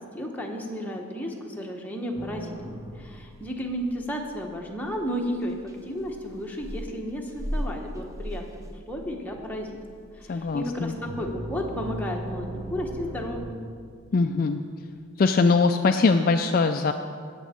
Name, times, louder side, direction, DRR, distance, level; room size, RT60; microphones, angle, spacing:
voice 1, 0.1-8.4 8.7-9.8 10.1-13.6, equal, 10° left, 0 dB, 1.1 m, -33 dB
sound 1, 2.2-13.5, right 1 dB, 15° right, 0.6 m, -38 dB
voice 2, 10.3-10.9 14.1-14.6 15.2-16.9, left 4 dB, 40° left, 6 dB, 0.3 m, -21 dB
18.5 x 7.1 x 4.3 m, 2.2 s
head